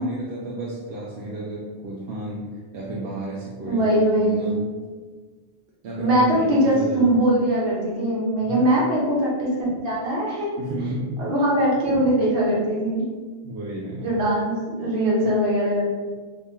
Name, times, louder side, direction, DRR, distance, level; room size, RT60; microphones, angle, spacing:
voice 1, 0.0-4.6 5.8-7.2 8.5-8.8 10.6-11.3 13.4-14.1, right 1 dB, 75° right, -4 dB, 0.8 m, -32 dB
voice 2, 3.7-4.6 6.0-10.5 11.2-13.0 14.0-15.8, right 1 dB, 60° right, -6 dB, 1.2 m, -21 dB
2.8 x 2.7 x 3.5 m, 1.4 s
omnidirectional pair, 1.1 m